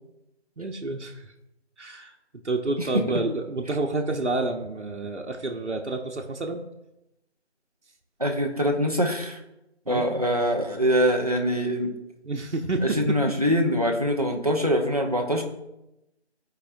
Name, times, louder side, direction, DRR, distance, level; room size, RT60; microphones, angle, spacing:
voice 1, 0.6-1.3 1.8-2.1 2.4-6.6 9.9-10.1 12.2-13.2, right 2 dB, 85° right, 1 dB, 1.0 m, -29 dB
voice 2, 8.2-9.4 9.9-12.0 12.8-15.4, equal, 35° right, 2 dB, 0.8 m, -24 dB
13.5 x 4.9 x 2.6 m, 0.91 s
figure-of-eight pair, 175°, 34 cm